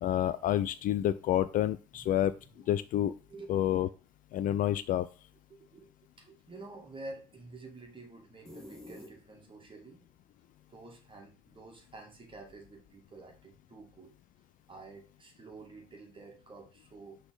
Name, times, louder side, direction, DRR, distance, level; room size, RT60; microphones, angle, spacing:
voice 1, 0.0-2.3 2.7-3.1 3.5-3.9 4.3-5.1, left 12 dB, 45° left, 15 dB, 0.4 m, -28 dB
voice 2, 5.5-5.9 6.2-10.0 10.7-14.1 14.7-17.2, right 2 dB, 25° right, 2 dB, 2.2 m, -49 dB
sound 1, 8.4-9.7, left 1 dB, ahead, 2.4 m, -49 dB
5.8 x 3.9 x 5.3 m, 0.35 s
figure-of-eight pair, 50°, 19 cm